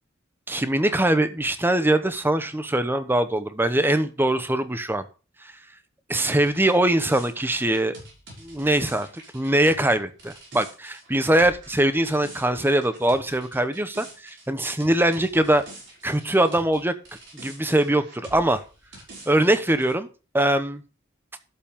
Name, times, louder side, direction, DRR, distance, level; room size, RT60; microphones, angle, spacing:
voice 1, 0.5-5.0 6.1-8.0 8.4-9.1 9.3-15.6 16.0-16.9 17.3-18.6 19.3-20.1 20.3-20.8, right 1 dB, 10° right, 0.9 m, -22 dB
sound 1, 6.2-16.8 17.1-19.9, right 2 dB, 60° right, 5.7 m, -46 dB
12.0 x 7.3 x 3.6 m
head